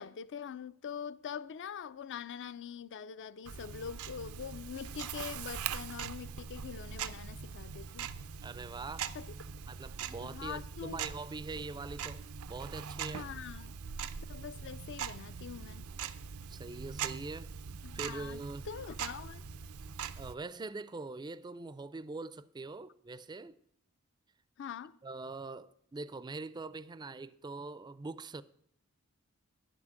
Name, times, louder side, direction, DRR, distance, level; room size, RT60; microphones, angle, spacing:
voice 1, 0.0-8.1 9.1-9.3 10.2-11.1 13.1-13.7 14.3-15.9 17.8-19.4 24.6-24.9, left 7 dB, 55° left, 0.4 m, -44 dB
Tick-tock, 3.5-20.3, right 7 dB, 90° right, 0.6 m, -42 dB
voice 2, 8.4-9.1 9.7-12.2 12.5-13.3 16.5-17.5 17.9-18.7 20.2-23.6 25.0-28.4, right 3 dB, 20° right, 0.4 m, -43 dB
11.0 x 6.1 x 7.6 m
head